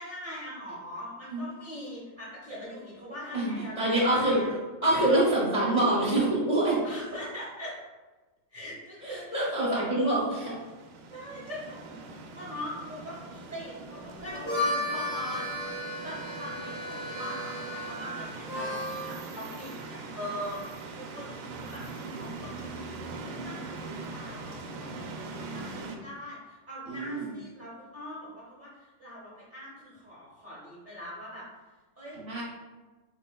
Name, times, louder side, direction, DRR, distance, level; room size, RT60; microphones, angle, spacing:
voice 1, 0.0-4.5 5.3-5.4 6.8-7.7 8.5-10.1 11.1-15.5 16.0-23.0 23.2-25.1 25.5-31.4 32.0-32.4, equal, 40° right, -7 dB, 0.7 m, -42 dB
voice 2, 3.8-4.4 4.8-6.8 9.0-10.5 26.9-27.3 32.2-32.4, right 1 dB, 30° left, -6 dB, 0.7 m, -25 dB
sound 1, 10.2-26.0, right 3 dB, 80° right, 1.3 m, -41 dB
Harmonica, 14.2-19.1, left 1 dB, 60° left, 2.0 m, -34 dB
7.3 x 3.0 x 2.2 m, 1.2 s
omnidirectional pair, 2.0 m